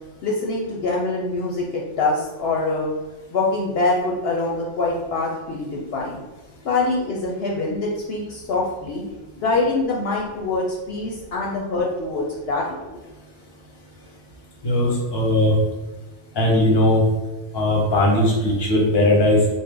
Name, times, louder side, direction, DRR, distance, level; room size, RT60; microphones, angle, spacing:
voice 1, 0.2-2.9 3.3-6.2 6.6-9.0 9.4-13.0, left 3 dB, 65° left, -2 dB, 0.7 m, -24 dB
voice 2, 14.6-15.6 16.3-17.0 17.5-19.6, left 1 dB, 25° left, -2 dB, 0.7 m, -18 dB
3.5 x 2.1 x 3.7 m, 1.1 s
omnidirectional pair, 1.2 m